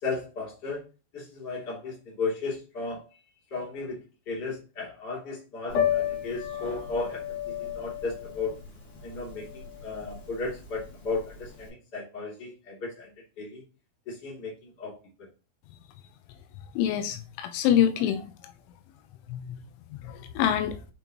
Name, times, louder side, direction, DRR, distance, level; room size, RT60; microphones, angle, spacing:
voice 1, 0.0-0.8 1.1-3.1 3.5-8.6 9.0-13.1 13.4-13.6 14.1-15.0, left 3 dB, 25° left, 2.7 m, -35 dB
Piano, 5.7-11.6, left 9 dB, 45° left, 3.8 m, -32 dB
voice 2, 16.8-18.3 19.3-19.6 20.0-20.7, left 10 dB, 90° left, 3.4 m, -25 dB
8.1 x 5.3 x 3.0 m
omnidirectional pair, 5.4 m